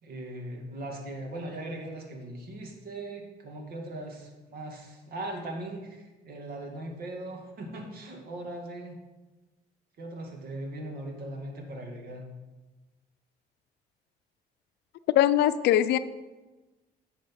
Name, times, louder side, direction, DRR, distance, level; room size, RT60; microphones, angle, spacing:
voice 1, 0.0-9.0 10.0-12.3, right 1 dB, 60° right, 2 dB, 2.3 m, -39 dB
voice 2, 15.1-16.0, left 12 dB, 75° left, 14 dB, 0.5 m, -21 dB
10.5 x 7.3 x 5.6 m, 1.2 s
cardioid pair, 110°, 17 cm